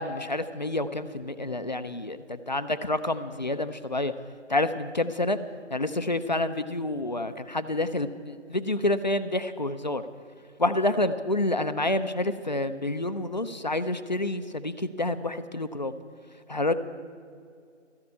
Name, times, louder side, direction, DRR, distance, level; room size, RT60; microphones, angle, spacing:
voice 1, 0.0-4.1 4.5-5.4 5.7-10.0 10.6-15.9 16.5-16.7, left 2 dB, 40° left, 11 dB, 0.4 m, -28 dB
13.5 x 7.0 x 8.5 m, 2.3 s
figure-of-eight pair, 160°, 36 cm